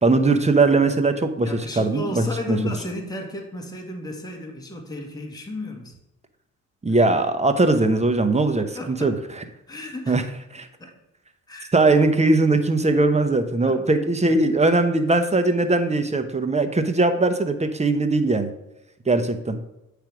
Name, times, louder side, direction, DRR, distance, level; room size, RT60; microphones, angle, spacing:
voice 1, 0.0-1.5 1.8-2.6 6.8-9.1 10.1-10.2 10.5-10.7 11.7-18.5 19.1-19.6, right 3 dB, 20° right, 8 dB, 0.9 m, -20 dB
voice 2, 1.4-5.9 8.6-9.2 9.7-10.2 10.8-10.9 11.5-11.7 13.6-14.1 14.5-14.6, left 1 dB, 10° left, 1 dB, 1.6 m, -34 dB
8.9 x 3.4 x 6.0 m, 0.90 s
cardioid pair, 75°, 32 cm